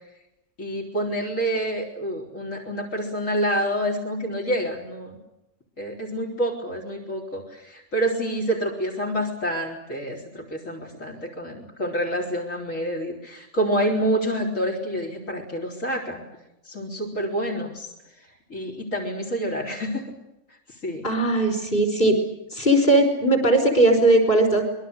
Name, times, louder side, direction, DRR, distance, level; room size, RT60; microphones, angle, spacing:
voice 1, 0.6-5.2 5.8-16.2 16.7-17.9 18.5-20.0 20.8-21.1, right 1 dB, 65° left, 2 dB, 4.5 m, -27 dB
voice 2, 21.0-22.2 22.5-24.6, right 1 dB, 40° left, 6 dB, 5.4 m, -19 dB
26.5 x 21.5 x 8.1 m, 0.88 s
omnidirectional pair, 1.5 m